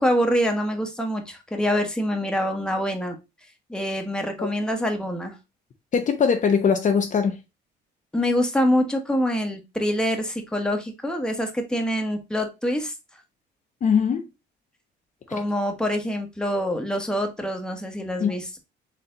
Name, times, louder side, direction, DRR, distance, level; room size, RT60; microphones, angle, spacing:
voice 1, 0.0-3.2 3.7-5.4 8.1-12.9 15.3-18.6, equal, 5° left, 1.2 m, -25 dB
voice 2, 5.9-7.4 13.8-14.3 15.3-15.4 18.2-18.3, left 6 dB, 40° left, 0.8 m, -21 dB
4.2 x 3.3 x 3.8 m
supercardioid pair, 85°, 19 cm